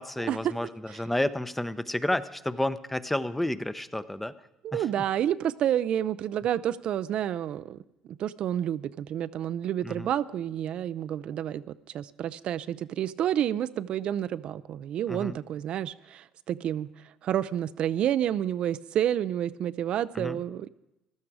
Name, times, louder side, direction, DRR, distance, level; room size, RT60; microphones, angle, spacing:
voice 1, 0.0-4.3 4.7-4.8 9.8-10.1 15.1-15.4 20.1-20.4, left 1 dB, 5° left, 14 dB, 0.6 m, -31 dB
voice 2, 4.6-7.8 8.1-16.9 17.2-20.7, right 10 dB, 60° right, 14 dB, 0.4 m, -29 dB
15.0 x 12.0 x 4.8 m, 0.93 s
supercardioid pair, 85°, 2 cm